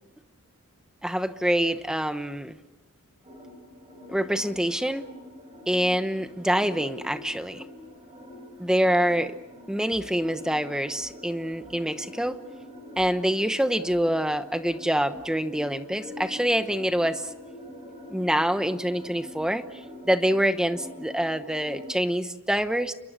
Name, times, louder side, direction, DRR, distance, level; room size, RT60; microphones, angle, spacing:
voice 1, 1.0-2.6 4.1-5.1 5.7-7.6 8.6-9.4 9.7-12.4 13.0-17.3 18.1-22.9, equal, 5° right, 10 dB, 1.0 m, -26 dB
sound 1, 3.2-21.9, left 1 dB, 25° right, 7.4 m, -45 dB
29.5 x 23.0 x 6.8 m, 0.99 s
head